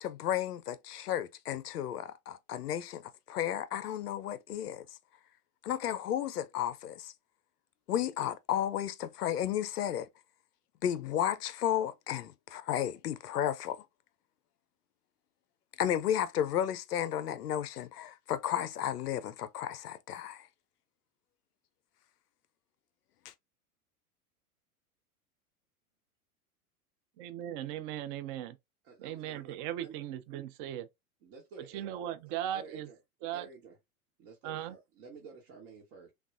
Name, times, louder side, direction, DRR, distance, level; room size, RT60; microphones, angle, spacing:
voice 1, 0.0-4.9 5.6-7.1 7.9-10.1 10.8-13.8 15.8-20.5, left 10 dB, 90° left, 0.5 m, -33 dB
voice 2, 27.2-28.6 29.0-30.9 31.7-32.9 33.2-33.5 34.4-34.7, right 11 dB, 40° right, 0.4 m, -38 dB
voice 3, 28.8-30.0 31.2-31.9 32.5-33.0 33.3-33.8 34.2-36.1, right 5 dB, 60° right, 1.1 m, -51 dB
3.3 x 2.3 x 2.4 m
hypercardioid pair, 100°, 45 cm